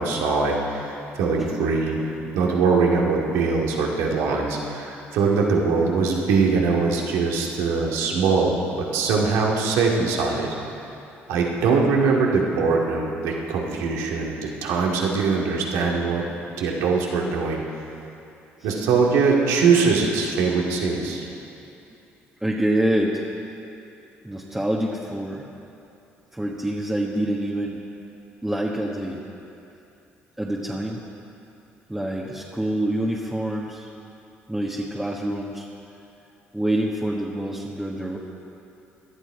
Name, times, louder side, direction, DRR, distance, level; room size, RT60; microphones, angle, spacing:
voice 1, 0.0-2.0 2.3-10.5 11.3-16.3 16.5-17.6 18.6-21.2, right 4 dB, 90° right, -1 dB, 2.1 m, -22 dB
voice 2, 22.4-23.2 24.2-25.4 26.3-27.8 28.4-29.2 30.4-31.0 31.9-33.9 34.5-35.7 36.5-38.2, right 1 dB, 10° right, -3 dB, 1.3 m, -26 dB
18.0 x 12.0 x 4.9 m, 2.7 s
cardioid pair, 85°, 5 cm